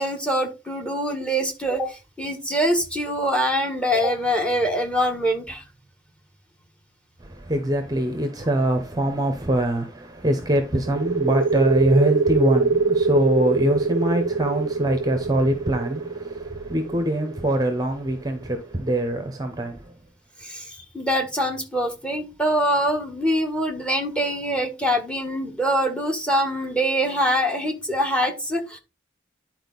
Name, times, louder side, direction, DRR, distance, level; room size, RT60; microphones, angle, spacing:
voice 1, 0.0-5.6 20.4-28.8, equal, 5° left, 1.5 m, -24 dB
voice 2, 7.2-19.9, right 1 dB, 20° right, 0.9 m, -23 dB
sound 1, 10.8-18.3, right 4 dB, 60° right, 0.4 m, -23 dB
10.0 x 4.4 x 4.0 m
head